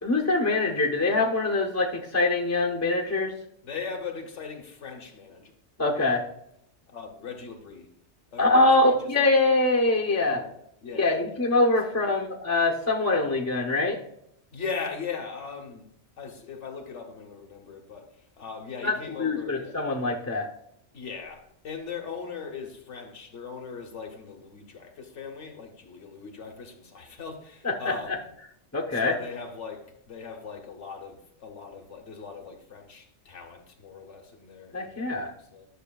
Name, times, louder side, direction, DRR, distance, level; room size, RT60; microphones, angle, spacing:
voice 1, 0.0-3.3 5.8-6.2 8.4-10.4 11.0-14.0 18.8-20.5 27.6-28.2 28.7-29.1 34.7-35.3, left 2 dB, 15° left, 0.7 m, -24 dB
voice 2, 3.6-5.5 6.9-7.9 8.3-9.1 9.4-9.6 10.2-10.5 10.8-11.5 11.9-12.0 14.5-15.8 16.2-18.1 18.4-19.8 20.9-28.2 28.9-35.7, left 5 dB, 80° left, 1.4 m, -39 dB
10.0 x 6.1 x 2.3 m
omnidirectional pair, 1.2 m